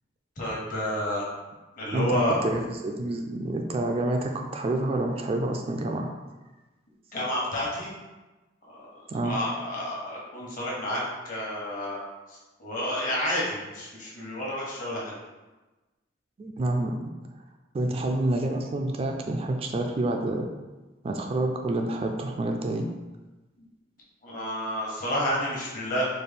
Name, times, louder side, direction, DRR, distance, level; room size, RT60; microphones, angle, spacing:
voice 1, 0.4-1.3 1.8-2.4 7.1-7.9 8.6-8.8 9.2-12.0 12.3-15.2 24.2-26.1, left 1 dB, 50° left, -5 dB, 1.1 m, -30 dB
voice 2, 1.9-6.1 9.1-9.4 16.4-17.0 17.7-20.5 21.0-22.8, right 2 dB, 30° right, 3 dB, 0.3 m, -28 dB
4.2 x 2.1 x 3.4 m, 1.1 s
head